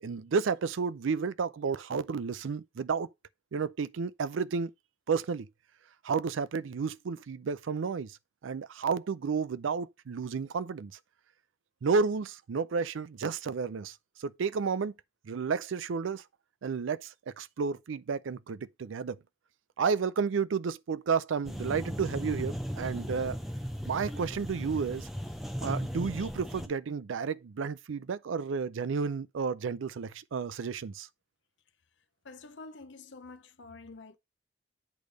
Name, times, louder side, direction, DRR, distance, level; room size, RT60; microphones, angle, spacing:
voice 1, 0.0-3.1 3.5-4.7 5.1-5.5 6.0-8.2 8.4-10.9 11.8-14.9 15.2-16.2 16.6-19.2 19.8-23.4 23.9-25.1 25.6-31.1, right 5 dB, 80° right, 0.4 m, -31 dB
sound 1, 21.4-26.7, equal, ahead, 0.7 m, -37 dB
voice 2, 32.2-34.2, left 3 dB, 65° left, 0.8 m, -48 dB
8.4 x 3.4 x 5.1 m
head